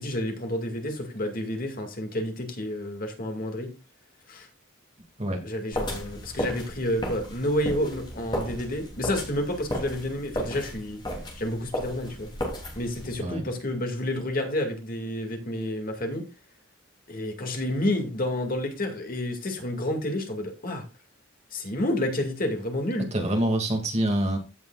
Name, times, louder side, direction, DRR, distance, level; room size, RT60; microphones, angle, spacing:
voice 1, 0.0-3.7 4.3-4.5 5.4-11.0 11.4-12.3 12.8-16.2 17.1-20.8 21.5-23.1, left 1 dB, 45° left, 2.2 m, -30 dB
sound 1, 5.7-13.2, equal, 20° left, 3.0 m, -34 dB
voice 2, 23.1-24.4, right 1 dB, 35° right, 2.4 m, -25 dB
15.5 x 7.1 x 2.4 m
head